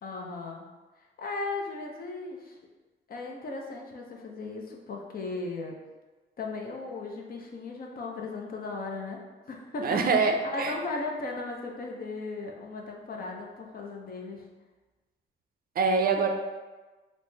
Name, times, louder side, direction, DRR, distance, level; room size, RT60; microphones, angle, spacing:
voice 1, 0.0-0.6 1.0-2.6 3.1-5.8 6.4-9.2 9.5-14.4, left 3 dB, 50° left, 0 dB, 0.7 m, -37 dB
voice 2, 9.8-10.7 15.8-16.3, right 4 dB, 50° right, 4 dB, 0.5 m, -24 dB
4.1 x 2.1 x 3.3 m, 1.2 s
cardioid pair, 90°, 20 cm